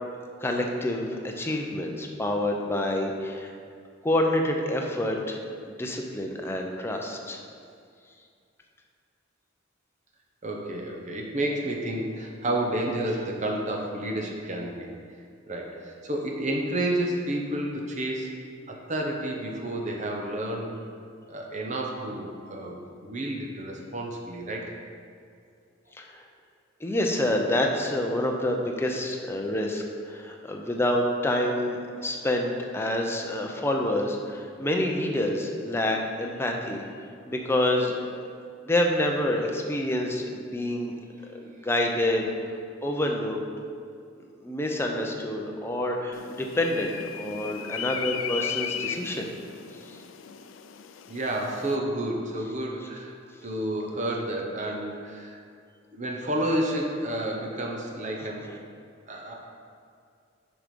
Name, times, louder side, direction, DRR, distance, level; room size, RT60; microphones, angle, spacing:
voice 1, 0.4-3.5 4.0-5.4 5.8-7.4 25.9-26.2 26.8-36.8 37.2-38.0 38.7-40.9 41.3-42.3 42.8-43.4 44.4-49.3 49.9-50.0, left 1 dB, 10° left, 1 dB, 0.6 m, -27 dB
voice 2, 10.4-14.9 15.5-18.3 18.7-20.8 21.3-24.8 51.1-53.2 53.4-55.4 55.9-58.5 59.1-59.3, right 1 dB, 35° right, 0 dB, 0.8 m, -30 dB
sound 1, 46.1-51.8, left 8 dB, 90° left, 0.4 m, -36 dB
6.3 x 4.9 x 5.2 m, 2.3 s
head